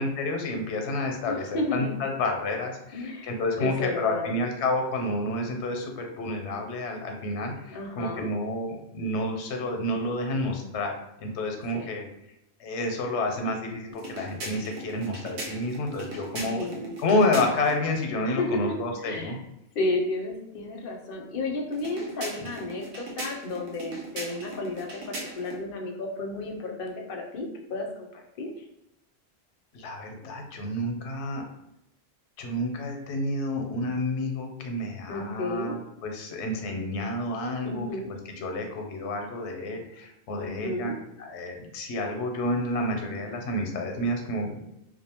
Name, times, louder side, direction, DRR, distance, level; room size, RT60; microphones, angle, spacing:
voice 1, 0.0-10.9 11.2-12.1 12.6-16.6 17.0-19.4 29.7-31.4 32.4-37.9 38.3-40.9 41.2-44.6, left 1 dB, 90° left, 3 dB, 0.9 m, -29 dB
voice 2, 1.3-1.9 2.9-3.3 3.6-4.3 7.7-8.3 11.7-12.0 16.3-16.9 18.2-18.7 19.0-19.4 19.7-28.6 35.1-35.7 37.6-38.1 40.4-41.0, left 2 dB, 65° left, 1 dB, 0.7 m, -32 dB
sound 1, 13.9-17.8 21.7-25.6, right 2 dB, 90° right, 1.0 m, -39 dB
2.5 x 2.1 x 2.8 m, 0.83 s
omnidirectional pair, 1.1 m